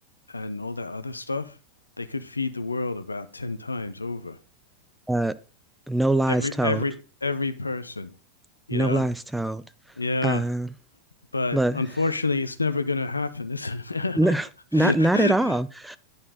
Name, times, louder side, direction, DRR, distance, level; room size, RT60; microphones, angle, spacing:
voice 1, 0.3-1.5 2.0-4.4 6.3-6.9 7.2-8.1 8.7-9.1 10.0-10.4 11.3-14.3 14.7-15.6, left 3 dB, 80° left, 0.6 m, -29 dB
voice 2, 5.9-6.8 8.7-9.6 10.2-10.7 11.5-11.8 14.2-14.5 14.7-16.0, right 1 dB, 5° right, 0.4 m, -23 dB
9.6 x 4.3 x 4.9 m
figure-of-eight pair, 90°, 0 cm